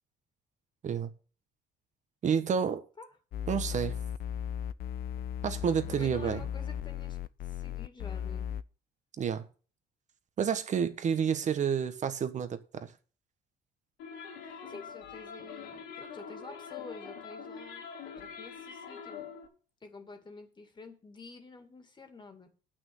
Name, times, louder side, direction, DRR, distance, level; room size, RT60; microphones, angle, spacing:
voice 1, 2.2-2.8 3.5-3.9 5.4-6.4 9.2-9.4 10.4-12.9, right 7 dB, 45° right, 1.4 m, -29 dB
sound 1, 3.3-8.6, left 10 dB, 65° left, 0.6 m, -36 dB
voice 2, 5.9-8.5 14.7-17.8 18.2-19.3 19.8-22.5, left 3 dB, 25° left, 2.3 m, -49 dB
sound 2, 14.0-19.5, left 6 dB, 90° left, 2.8 m, -44 dB
9.0 x 6.2 x 7.8 m
cardioid pair, 110°, 17 cm